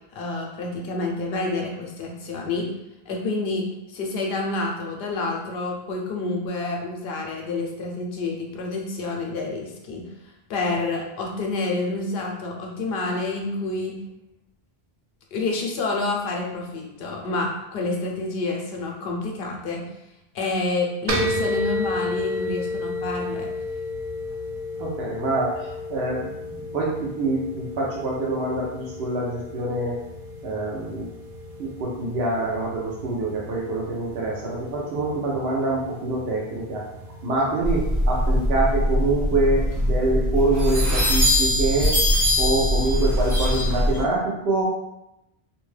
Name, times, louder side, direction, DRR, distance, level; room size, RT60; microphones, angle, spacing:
voice 1, 0.1-2.7 3.1-10.0 10.5-13.9 15.3-19.8 20.3-23.5, left 3 dB, 75° left, 0 dB, 0.8 m, -28 dB
sound 1, 21.1-38.4, left 1 dB, 55° right, 0.4 m, -33 dB
voice 2, 24.8-30.0 30.4-31.1 31.6-36.8 37.2-42.0 42.4-44.6, right 2 dB, 80° right, -4 dB, 0.8 m, -25 dB
sound 2, 37.6-44.0, equal, 5° left, 1.3 m, -21 dB
2.5 x 2.2 x 3.1 m, 0.88 s
omnidirectional pair, 1.0 m